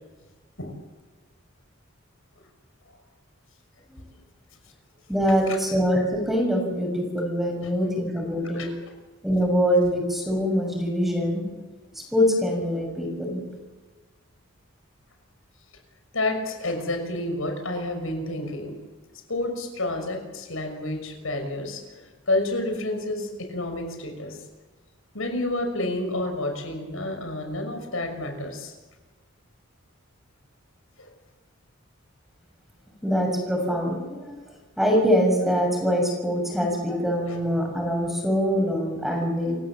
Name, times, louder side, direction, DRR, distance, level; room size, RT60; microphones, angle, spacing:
voice 1, 5.1-8.7 9.2-11.4 12.1-13.4 33.0-34.4 34.8-39.6, equal, ahead, 2 dB, 6.3 m, -24 dB
voice 2, 8.2-8.7 16.1-18.8 19.3-24.4 25.1-28.7 31.0-31.1 37.3-37.4, left 2 dB, 85° left, 5 dB, 6.0 m, -30 dB
28.5 x 16.5 x 7.5 m, 1.3 s
head